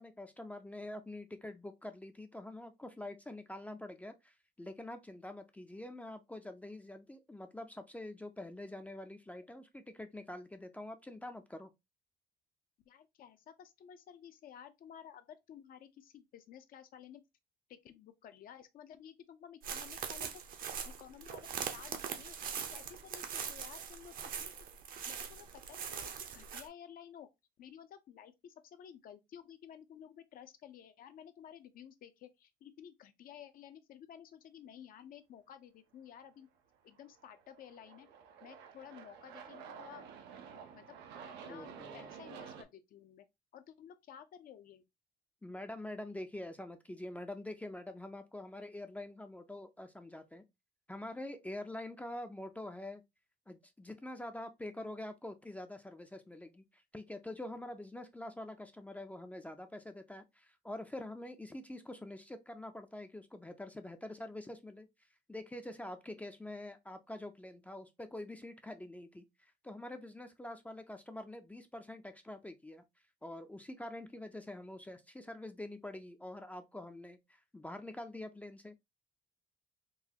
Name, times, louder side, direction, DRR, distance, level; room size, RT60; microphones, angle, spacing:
voice 1, 0.0-11.7 41.5-42.1 45.4-50.4 50.9-53.0 53.5-64.9 65.3-72.8 73.2-78.8, left 1 dB, 10° left, 0.4 m, -46 dB
voice 2, 12.9-17.2 17.7-24.5 25.1-27.3 27.6-36.5 36.8-38.1 38.4-40.1 40.7-40.8 41.4-43.2 43.5-44.8, left 9 dB, 60° left, 0.5 m, -54 dB
sound 1, 19.6-26.7, right 7 dB, 55° right, 0.7 m, -42 dB
Aircraft, 36.9-42.6, right 7 dB, 90° right, 0.7 m, -51 dB
3.9 x 2.3 x 2.8 m
cardioid pair, 110°, 17 cm